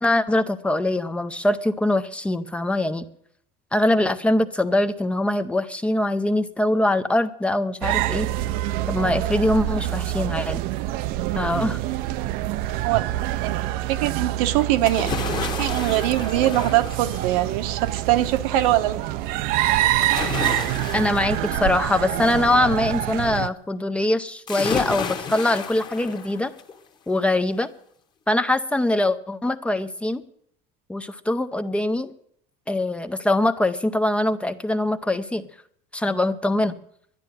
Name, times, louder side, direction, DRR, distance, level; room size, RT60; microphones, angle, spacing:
voice 1, 0.0-3.1 3.7-8.3 8.9-10.6 11.3-11.8 20.9-26.5 27.1-27.7 28.3-30.2 30.9-32.1 32.7-35.5 35.9-36.7, left 1 dB, 5° left, 10 dB, 0.5 m, -23 dB
sound 1, 7.8-23.5, right 14 dB, 50° right, 0.5 m, -26 dB
voice 2, 13.4-15.1 15.6-19.0, right 14 dB, 85° right, 8 dB, 1.2 m, -22 dB
sound 2, 14.9-17.7 20.0-22.6 24.5-26.8 27.2-27.3, left 6 dB, 25° left, 1.3 m, -32 dB
11.5 x 11.0 x 9.2 m, 0.66 s
cardioid pair, 170°, 19 cm